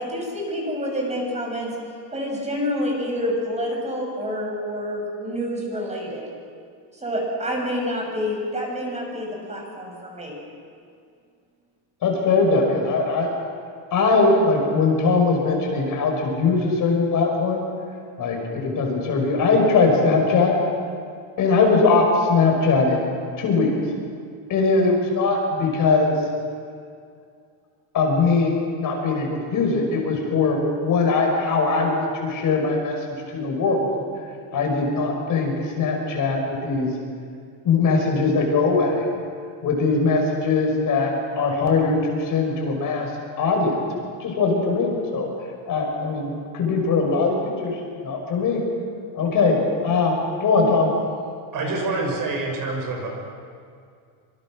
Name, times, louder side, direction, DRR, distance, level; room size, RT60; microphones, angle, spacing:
voice 1, 0.0-1.8 2.1-6.3 6.9-10.4, equal, 15° right, -1 dB, 7.1 m, -28 dB
voice 2, 12.0-13.3 13.9-17.6 18.2-20.6 21.4-23.1 23.4-23.7 24.5-26.2 27.9-34.0 34.5-36.9 37.6-39.1 39.6-43.1 43.4-43.8 44.2-45.3 45.7-48.6 49.1-50.1 50.4-50.9, left 4 dB, 40° left, 1 dB, 5.9 m, -21 dB
voice 3, 51.5-53.1, right 3 dB, 45° right, 1 dB, 6.6 m, -26 dB
26.5 x 26.5 x 6.4 m, 2.3 s
cardioid pair, 155°, 48 cm